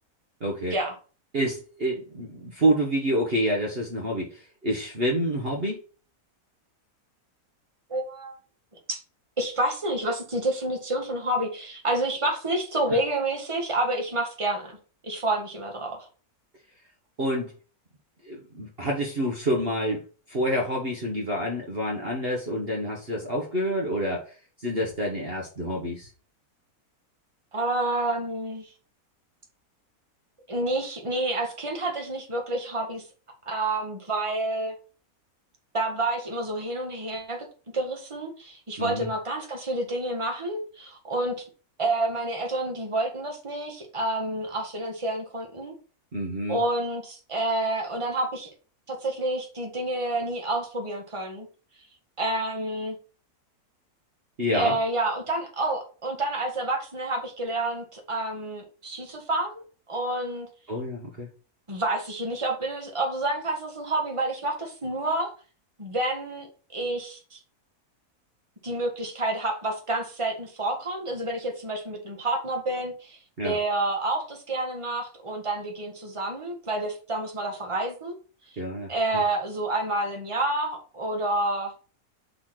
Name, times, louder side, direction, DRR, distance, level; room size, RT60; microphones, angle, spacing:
voice 1, 0.4-0.7 1.3-5.8 17.2-17.5 18.2-24.3 24.6-26.1 38.8-39.1 46.1-46.6 54.4-54.7 60.7-61.3 73.4-73.5 78.6-79.2, equal, 40° right, -1 dB, 1.6 m, -28 dB
voice 2, 7.9-8.4 8.9-9.0 9.4-14.8 15.0-16.1 27.5-28.7 30.5-33.0 33.5-34.8 35.7-37.5 37.7-41.3 41.8-45.7 46.5-48.5 48.9-51.5 52.2-53.0 54.5-60.5 61.7-65.3 65.8-66.5 66.7-67.4 68.6-78.2 78.5-78.6 78.9-81.7, right 2 dB, 20° right, 2 dB, 1.7 m, -29 dB
5.7 x 4.2 x 5.9 m, 0.36 s
omnidirectional pair, 1.6 m